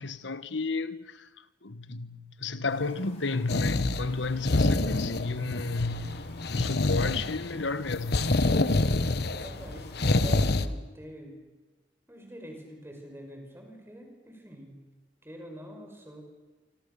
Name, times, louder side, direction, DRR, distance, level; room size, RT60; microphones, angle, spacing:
voice 1, 0.0-6.2 6.5-8.4, left 3 dB, 90° left, 1.4 m, -32 dB
sound 1, 2.7-10.6, left 1 dB, 35° left, 6.4 m, -53 dB
sound 2, 3.5-10.7, left 2 dB, 60° left, 1.1 m, -27 dB
voice 2, 9.3-11.5 12.1-14.8 15.2-16.2, equal, 15° right, 5.9 m, -45 dB
26.5 x 26.0 x 7.0 m
head